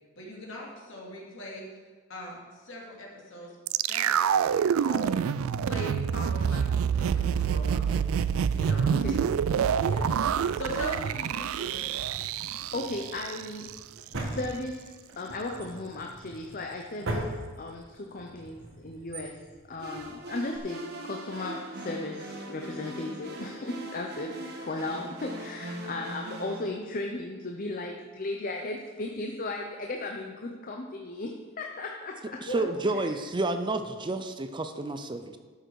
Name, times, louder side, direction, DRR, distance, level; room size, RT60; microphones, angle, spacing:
voice 1, 0.2-1.7 2.1-3.5 3.9-5.2 5.7-9.2 9.9-10.1 10.6-11.9 32.4-32.6, left 1 dB, 65° left, -2 dB, 2.7 m, -40 dB
sound 1, 3.7-13.8 14.1-14.2, right 7 dB, 85° right, 0.3 m, -27 dB
Drawer open or close, 6.1-7.7 8.5-11.0 11.2-11.3 11.8-20.6, right 1 dB, 65° right, 1.5 m, -41 dB
voice 2, 8.9-9.2 12.5-13.7 14.2-19.4 19.7-32.4, left 2 dB, 40° left, 2 dB, 0.7 m, -36 dB
sound 2, 19.8-26.6, right 1 dB, 50° right, 1.5 m, -40 dB
voice 3, 32.4-35.4, right 2 dB, 25° right, 8 dB, 0.5 m, -30 dB
12.5 x 6.6 x 4.7 m, 1.5 s
head